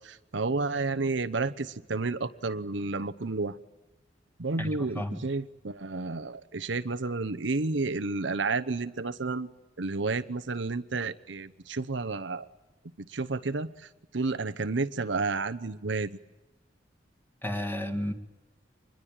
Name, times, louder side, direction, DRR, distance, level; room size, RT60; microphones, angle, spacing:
voice 1, 0.0-3.6 4.4-9.5 9.8-12.5 13.1-13.9 14.1-16.2, right 3 dB, 75° right, 0.9 m, -31 dB
voice 2, 4.6-5.2 17.4-18.1, left 1 dB, 10° left, 2.0 m, -32 dB
25.5 x 21.0 x 8.9 m
head